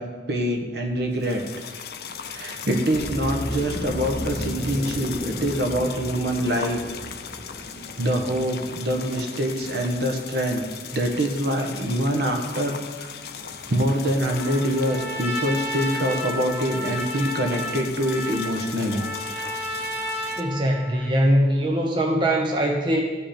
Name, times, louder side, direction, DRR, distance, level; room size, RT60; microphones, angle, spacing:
voice 1, 0.0-1.4 2.2-6.8 8.0-13.1 13.7-19.6, equal, 65° right, 2 dB, 1.3 m, -25 dB
sound 1, 1.1-20.4, left 7 dB, 60° left, 0.6 m, -38 dB
sound 2, 2.9-9.6, equal, 30° left, 1.6 m, -35 dB
Trumpet, 14.3-21.1, left 1 dB, 10° left, 1.6 m, -32 dB
voice 2, 20.4-23.0, equal, 25° right, 0 dB, 0.8 m, -21 dB
15.0 x 5.5 x 4.4 m, 1.3 s
head